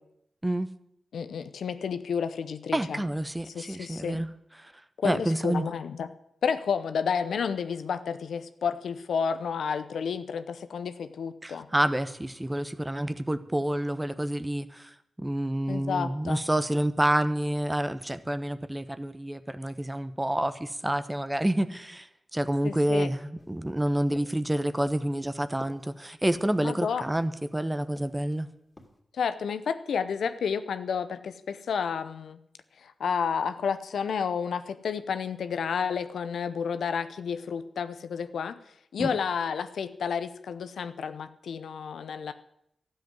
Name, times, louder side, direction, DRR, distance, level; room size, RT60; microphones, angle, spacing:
voice 1, 1.1-3.0 3.5-4.2 5.0-6.1 6.4-11.7 15.7-16.4 22.6-23.1 26.6-27.0 29.1-32.4 32.8-38.6 38.9-42.3, left 6 dB, 90° left, 11 dB, 0.7 m, -31 dB
voice 2, 2.7-4.3 4.6-4.7 5.0-5.7 11.4-22.1 22.3-28.5 39.0-39.1, right 1 dB, 15° right, 12 dB, 1.0 m, -28 dB
sound 1, 23.4-27.6 28.0-28.4 28.8-29.0, left 1 dB, 25° left, 2.9 m, -51 dB
13.0 x 7.9 x 9.4 m, 0.76 s
cardioid pair, 60°, 0 cm